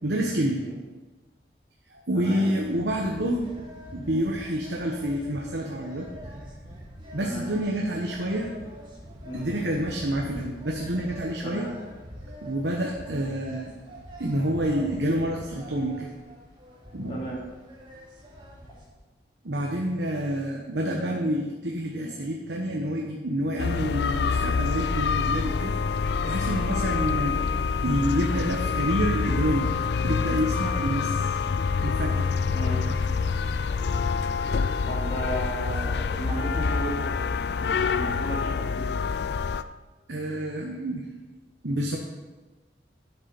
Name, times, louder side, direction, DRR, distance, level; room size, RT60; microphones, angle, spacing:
voice 1, 0.0-0.6 1.9-3.5 3.9-6.1 7.1-8.5 9.3-11.7 12.3-13.8 14.2-16.1 16.9-17.2 19.4-25.8 26.2-29.7 30.0-31.2 31.8-32.4 40.1-41.1 41.6-42.0, equal, 80° right, 0 dB, 1.2 m, -28 dB
sound 1, 2.6-18.9, equal, 25° right, 2.6 m, -44 dB
voice 2, 17.1-17.4 32.5-32.8 34.8-37.2 37.9-38.9, right 1 dB, 30° left, -6 dB, 3.2 m, -34 dB
sound 2, 23.6-39.6, left 5 dB, 70° left, 0.4 m, -26 dB
10.5 x 8.3 x 5.3 m, 1.2 s
head